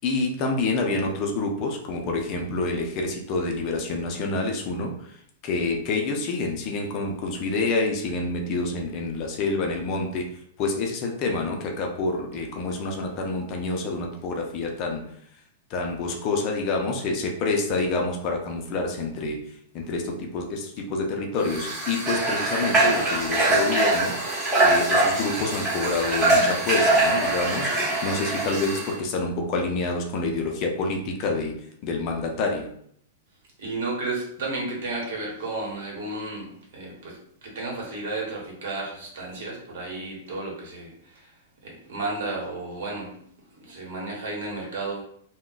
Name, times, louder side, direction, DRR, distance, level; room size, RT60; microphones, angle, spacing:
voice 1, 0.0-4.9 5.4-10.3 10.6-15.0 15.7-19.4 19.7-24.1 24.6-31.5 31.8-32.7, left 3 dB, 35° left, 1 dB, 0.5 m, -27 dB
Water / Water tap faucet, 21.4-28.9, right 2 dB, 20° right, 1.1 m, -23 dB
voice 2, 33.6-41.3 41.6-43.2 43.6-45.0, right 2 dB, 65° right, -2 dB, 1.2 m, -33 dB
2.3 x 2.1 x 3.8 m, 0.67 s
supercardioid pair, 150°, 0 cm